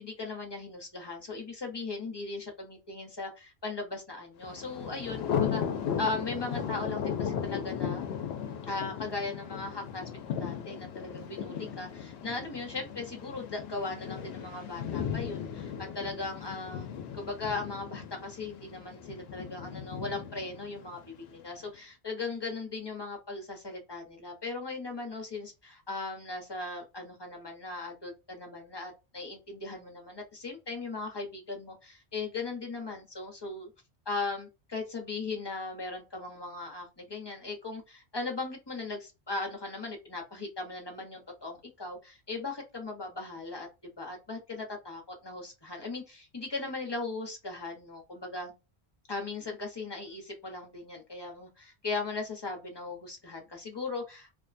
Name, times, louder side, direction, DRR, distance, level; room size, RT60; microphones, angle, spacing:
voice 1, 0.0-5.6 6.0-8.1 8.6-33.7 34.1-43.7 44.0-48.5 49.1-54.3, left 3 dB, 25° left, 1 dB, 0.8 m, -38 dB
Thunder, 4.4-21.4, left 8 dB, 70° left, 0.8 m, -36 dB
2.5 x 2.1 x 2.5 m, 0.26 s
omnidirectional pair, 1.1 m